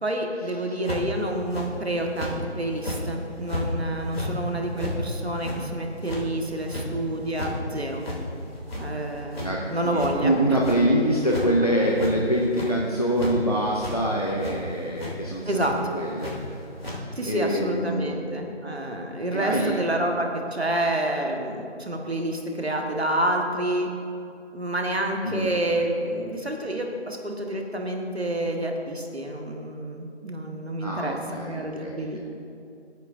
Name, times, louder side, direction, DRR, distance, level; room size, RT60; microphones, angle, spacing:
voice 1, 0.0-8.0 8.8-10.6 15.5-15.7 17.1-23.9 24.5-31.2 31.5-32.2, right 1 dB, 60° right, 2 dB, 1.5 m, -28 dB
sound 1, 0.9-1.1 1.5-1.7 2.2-2.3 2.8-3.0 3.5-3.6 4.0-4.3 4.8-4.9 5.4-5.6 6.0-6.2 6.7-6.9 7.2-7.5 8.0-8.2 8.5-9.1 9.3-9.5 10.0-10.1 10.6-10.8 11.2-11.5 11.9-12.1 12.4-12.7 13.2-13.3 13.8-13.9 14.4-14.6 15.0-15.1 15.6-15.7 16.2-16.3 16.8-17.0, left 1 dB, 55° left, 2.9 m, -32 dB
voice 2, 9.4-16.3 16.9-18.2 19.3-20.0 25.2-25.5 30.8-32.2, right 1 dB, 35° left, -2 dB, 0.7 m, -25 dB
18.0 x 9.2 x 2.6 m, 2.5 s
figure-of-eight pair, 170°, 35 cm